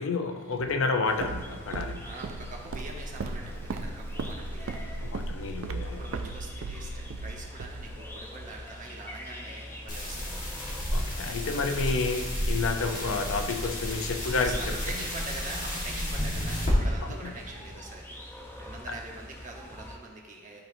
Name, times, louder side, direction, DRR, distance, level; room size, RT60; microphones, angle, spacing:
voice 1, 0.0-2.0 5.0-6.0 10.9-14.6 17.2-17.3, left 4 dB, 80° left, 6 dB, 0.6 m, -30 dB
Walk footsteps, 0.6-8.5, right 3 dB, 75° right, 0.4 m, -37 dB
sound 1, 1.1-20.0, left 1 dB, 10° left, 0.6 m, -45 dB
voice 2, 2.0-5.1 5.8-10.5 13.0-13.2 14.4-18.2 18.6-20.6, right 2 dB, 40° right, -1 dB, 1.0 m, -44 dB
sound 2, 9.9-16.7, equal, 40° left, 1.5 m, -32 dB
11.5 x 4.3 x 2.7 m, 1.4 s
head